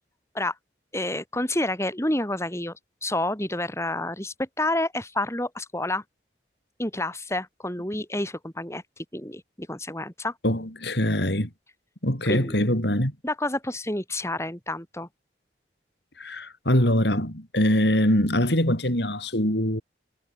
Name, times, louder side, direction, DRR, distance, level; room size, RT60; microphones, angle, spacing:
voice 1, 0.9-2.7 3.0-6.0 6.8-8.8 9.1-10.3 12.2-12.6 13.2-15.1, left 1 dB, 15° left, 6.7 m, -29 dB
voice 2, 10.4-11.5 12.0-13.1 16.2-19.8, left 1 dB, 70° left, 7.6 m, -23 dB
head